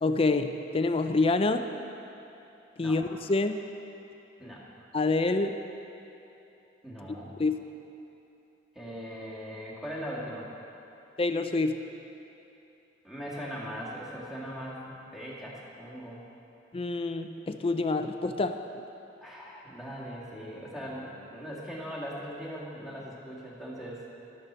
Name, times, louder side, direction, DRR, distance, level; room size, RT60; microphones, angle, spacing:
voice 1, 0.0-1.7 2.8-3.6 4.9-5.6 7.4-7.6 11.2-11.8 16.7-18.6, left 3 dB, 30° left, 8 dB, 0.4 m, -27 dB
voice 2, 6.8-7.4 8.7-10.5 13.0-16.2 19.2-24.0, equal, ahead, -6 dB, 1.9 m, -40 dB
12.5 x 11.5 x 4.5 m, 2.9 s
head